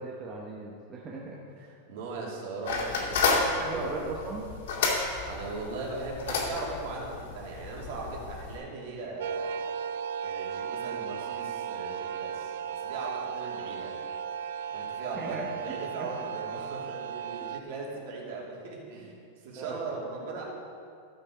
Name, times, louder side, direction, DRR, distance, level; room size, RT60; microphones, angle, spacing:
voice 1, 0.0-1.8 3.6-4.5 15.1-16.1 19.6-19.8, right 3 dB, 20° right, -3 dB, 0.9 m, -38 dB
voice 2, 1.9-3.9 5.2-9.5 10.2-14.0 14.3-20.4, right 3 dB, 55° right, -3 dB, 2.7 m, -39 dB
sound 1, 2.6-8.6, left 4 dB, 75° left, 2.3 m, -31 dB
sound 2, 9.2-17.6, right 8 dB, 70° right, 0.4 m, -35 dB
14.0 x 7.0 x 4.9 m, 2.4 s
supercardioid pair, 170°, 0 cm